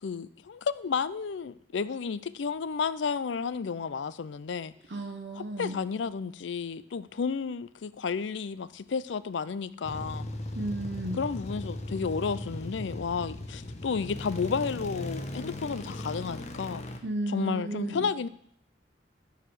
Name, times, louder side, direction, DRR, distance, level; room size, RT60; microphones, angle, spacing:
voice 1, 0.0-4.7 5.4-10.3 11.2-16.8 17.3-18.3, left 5 dB, 80° left, 16 dB, 0.5 m, -32 dB
voice 2, 4.9-5.8 10.5-11.2 17.0-18.1, right 1 dB, 65° right, 3 dB, 1.1 m, -34 dB
sound 1, 9.8-17.0, left 1 dB, 40° left, 1.0 m, -38 dB
12.0 x 4.9 x 6.1 m, 0.65 s
head